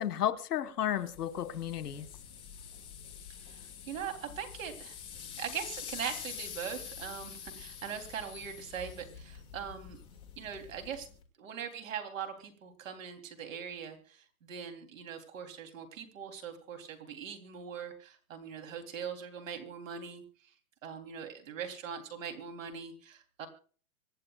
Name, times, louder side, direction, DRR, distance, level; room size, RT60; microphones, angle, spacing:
voice 1, 0.0-2.1, left 10 dB, 85° left, 1.6 m, -33 dB
sound 1, 1.0-11.2, left 8 dB, 10° left, 1.8 m, -46 dB
voice 2, 3.3-10.0 10.4-11.1 11.4-20.5 20.8-23.5, right 7 dB, 60° right, 3.5 m, -41 dB
26.0 x 10.5 x 2.4 m
hypercardioid pair, 170°, 45 cm